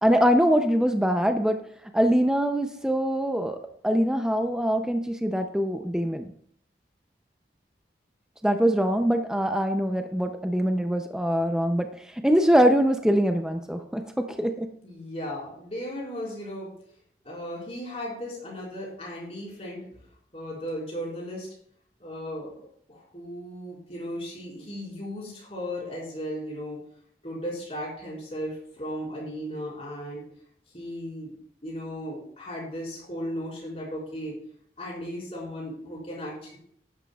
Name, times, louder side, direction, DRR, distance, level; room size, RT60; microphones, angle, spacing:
voice 1, 0.0-1.6 1.9-6.3 8.4-14.7, equal, 5° right, 6 dB, 0.5 m, -23 dB
voice 2, 14.8-16.7 17.2-19.8 20.3-21.5 22.0-26.8 27.2-30.2 30.7-31.3 31.6-34.3 34.8-36.6, equal, 35° left, -5 dB, 4.6 m, -36 dB
13.0 x 11.0 x 2.3 m, 0.66 s
head